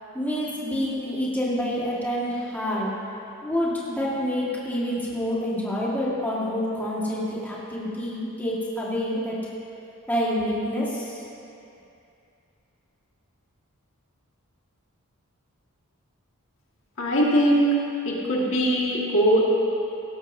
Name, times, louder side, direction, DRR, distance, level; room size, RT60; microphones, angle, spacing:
voice 1, 0.1-2.9 3.4-9.4 10.1-11.2, equal, 10° left, -7 dB, 1.7 m, -27 dB
voice 2, 17.0-17.8 18.1-19.5, right 1 dB, 60° left, -4 dB, 1.8 m, -21 dB
17.0 x 12.5 x 2.7 m, 2.7 s
head